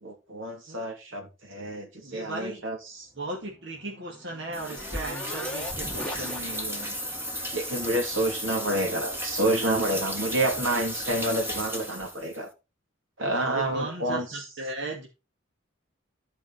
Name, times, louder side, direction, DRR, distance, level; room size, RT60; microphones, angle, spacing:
voice 1, 0.0-3.1 7.5-12.5 13.2-14.3, right 1 dB, 75° right, 3.0 m, -28 dB
voice 2, 2.0-2.6 3.2-7.0 13.5-15.1, right 2 dB, 60° right, 2.2 m, -36 dB
sound 1, 3.5-7.1, left 1 dB, 5° left, 1.5 m, -40 dB
sound 2, 4.5-12.4, equal, 10° right, 1.8 m, -34 dB
14.5 x 5.2 x 4.3 m
head